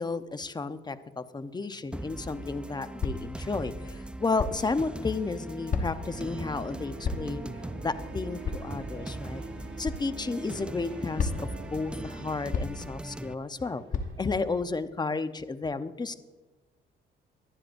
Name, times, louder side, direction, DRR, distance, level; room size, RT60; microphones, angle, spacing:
voice 1, 0.0-7.5 7.8-9.4 9.8-11.3 11.6-13.8 14.2-16.1, left 3 dB, 20° left, 11 dB, 0.8 m, -32 dB
sound 1, 1.9-13.3, right 1 dB, 5° right, 0.4 m, -41 dB
sound 2, 3.0-3.4 4.4-4.7 5.7-6.1 7.0-7.4 8.4-8.7 9.8-10.0 11.2-11.6 12.5-12.9 13.9-14.1, left 4 dB, 40° left, 1.1 m, -31 dB
sound 3, 6.0-14.6, right 5 dB, 70° right, 1.3 m, -47 dB
23.5 x 9.7 x 2.6 m, 1.2 s
cardioid pair, 90°, 20 cm